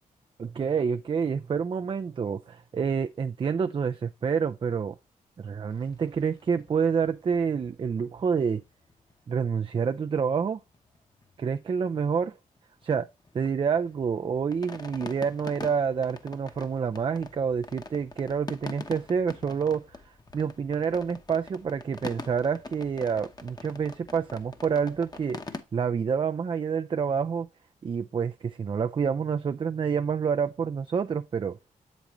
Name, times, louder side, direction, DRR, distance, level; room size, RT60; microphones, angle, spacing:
voice 1, 0.4-5.0 5.4-8.6 9.3-10.6 11.4-12.4 12.8-13.1 13.3-20.0 20.3-25.4 25.7-27.5 27.8-31.6, right 6 dB, 35° right, 0.4 m, -28 dB
sound 1, 5.7-10.2 10.4-10.5 10.7-11.0 11.2-12.2 12.6-25.6, left 3 dB, 25° left, 0.9 m, -44 dB
7.1 x 5.1 x 3.0 m
cardioid pair, 65°, 15 cm